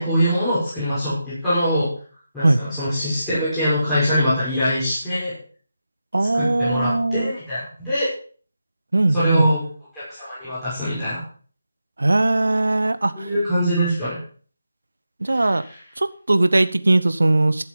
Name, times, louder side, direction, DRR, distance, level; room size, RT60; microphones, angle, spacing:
voice 1, 0.0-1.9 2.3-5.3 6.3-8.1 9.1-9.6 9.9-11.2 13.2-14.2 15.3-15.6, equal, 5° left, -14 dB, 5.8 m, -22 dB
voice 2, 6.1-7.3 8.9-9.5 12.0-13.3 15.2-15.6 16.0-17.6, right 2 dB, 60° right, 13 dB, 0.9 m, -19 dB
13.5 x 7.5 x 5.3 m, 0.43 s
figure-of-eight pair, 155°, 0 cm